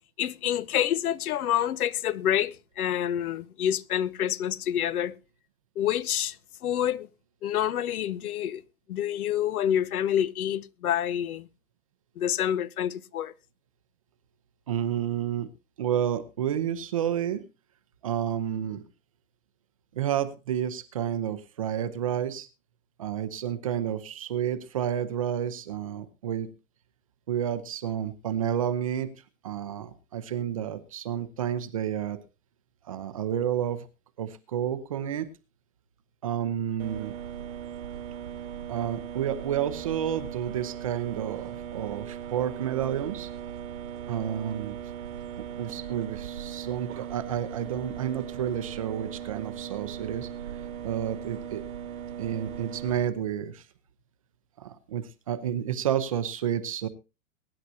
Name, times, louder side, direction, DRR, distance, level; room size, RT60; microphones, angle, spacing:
voice 1, 0.2-5.2 5.8-6.4 6.6-7.1 7.4-8.6 8.9-11.5 12.2-13.3, left 10 dB, 85° left, 0.8 m, -27 dB
voice 2, 14.7-15.5 15.8-17.4 18.0-18.8 19.9-22.5 23.0-26.5 27.3-29.1 29.4-32.2 32.9-33.9 34.2-35.3 36.2-37.1 38.7-43.3 44.1-44.8 45.4-50.3 50.8-51.6 52.2-53.6 54.6-56.9, right 10 dB, 25° right, 0.5 m, -30 dB
sound 1, 36.8-53.1, right 9 dB, 70° right, 1.4 m, -38 dB
22.5 x 9.8 x 2.7 m
hypercardioid pair, 170°, 43 cm